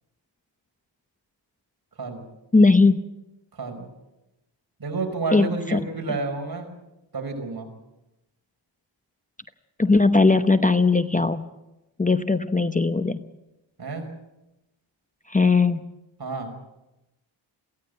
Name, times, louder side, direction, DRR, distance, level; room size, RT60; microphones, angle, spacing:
voice 1, 2.5-3.0 5.3-5.8 9.8-11.5 12.0-13.2 15.3-15.8, left 3 dB, 15° left, 10 dB, 0.8 m, -19 dB
voice 2, 3.5-3.9 4.8-6.8 7.1-7.7 13.8-14.1 16.2-16.5, right 3 dB, 50° right, 4 dB, 5.3 m, -30 dB
23.5 x 16.0 x 8.2 m, 0.95 s
wide cardioid pair, 85°, 46 cm